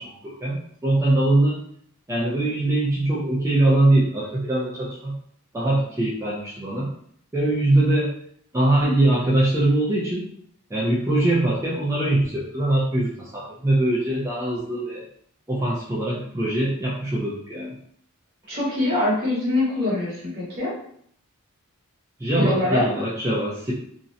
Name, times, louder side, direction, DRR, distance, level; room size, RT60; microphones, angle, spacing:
voice 1, 0.0-1.6 2.1-5.2 5.5-6.9 7.3-8.1 8.5-10.2 10.7-15.0 15.5-17.8 22.2-23.7, right 1 dB, 15° right, -6 dB, 0.3 m, -22 dB
voice 2, 18.5-20.7 22.4-22.9, left 2 dB, 45° right, -6 dB, 1.0 m, -23 dB
2.5 x 2.0 x 2.6 m, 0.65 s
head